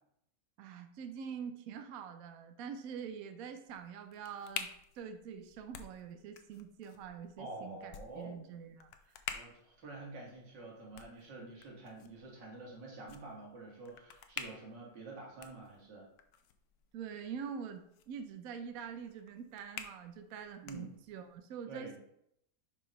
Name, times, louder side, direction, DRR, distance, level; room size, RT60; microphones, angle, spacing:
voice 1, 0.6-4.7 5.0-8.9 16.9-22.0, right 7 dB, 65° right, 7 dB, 0.9 m, -45 dB
sound 1, 3.6-21.4, left 8 dB, 70° left, 1.1 m, -50 dB
voice 2, 7.4-8.4 9.3-16.1 20.6-20.9 21.7-22.0, right 2 dB, 85° right, -2 dB, 2.4 m, -48 dB
5.0 x 4.8 x 5.3 m, 0.75 s
omnidirectional pair, 1.9 m